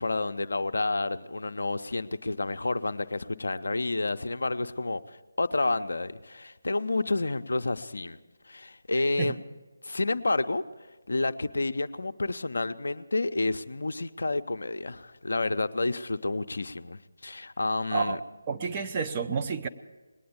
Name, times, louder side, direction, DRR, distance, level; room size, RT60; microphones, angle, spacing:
voice 1, 0.0-8.2 8.4-9.4 9.8-10.6 11.1-18.2, left 2 dB, 65° left, 9 dB, 0.5 m, -30 dB
voice 2, 18.5-19.7, right 5 dB, 25° right, 5 dB, 0.6 m, -29 dB
20.0 x 9.3 x 7.0 m, 1.2 s
figure-of-eight pair, 155°, 0 cm